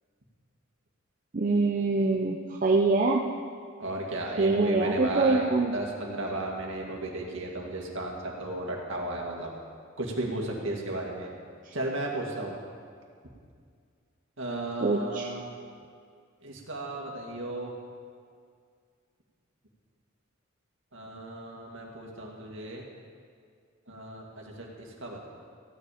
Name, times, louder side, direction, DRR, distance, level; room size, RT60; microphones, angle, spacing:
voice 1, 1.3-3.2 4.4-5.7 14.8-15.3, right 3 dB, 40° right, -1 dB, 0.7 m, -24 dB
voice 2, 3.8-9.5 10.0-11.3 11.7-12.6 14.4-15.5 16.4-17.7 20.9-22.9 23.9-25.3, right 1 dB, 65° right, -1 dB, 2.1 m, -34 dB
15.0 x 10.0 x 5.1 m, 2.1 s
head